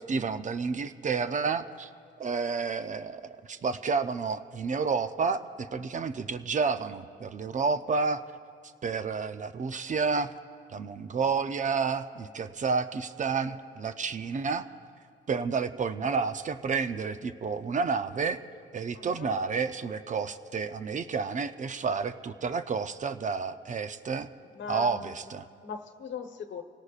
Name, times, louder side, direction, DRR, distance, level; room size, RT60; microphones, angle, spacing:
voice 1, 0.0-1.9 2.2-8.2 8.8-10.3 10.7-14.7 15.3-18.4 18.7-24.3 24.7-25.5, right 5 dB, 40° right, 10 dB, 0.6 m, -30 dB
voice 2, 18.9-19.3 24.5-25.2 25.6-26.6, left 6 dB, 65° left, 6 dB, 1.1 m, -39 dB
25.0 x 17.5 x 2.5 m, 2.2 s
cardioid pair, 90°, 20 cm